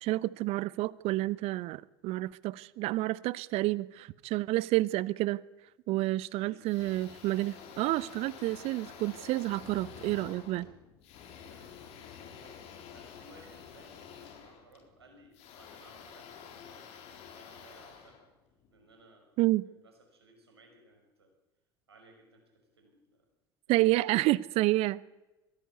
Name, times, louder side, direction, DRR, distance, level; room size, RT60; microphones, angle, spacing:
voice 1, 0.0-5.4 5.9-10.7 19.4-19.6 23.7-25.0, right 18 dB, 50° right, 0.9 m, -29 dB
voice 2, 6.3-6.7 11.4-18.3 18.7-21.3 21.9-23.3 23.7-24.3, right 1 dB, 85° right, 5.6 m, -59 dB
sound 1, 6.7-18.9, left 8 dB, 55° left, 4.1 m, -50 dB
22.5 x 16.5 x 8.3 m
figure-of-eight pair, 70°, 13 cm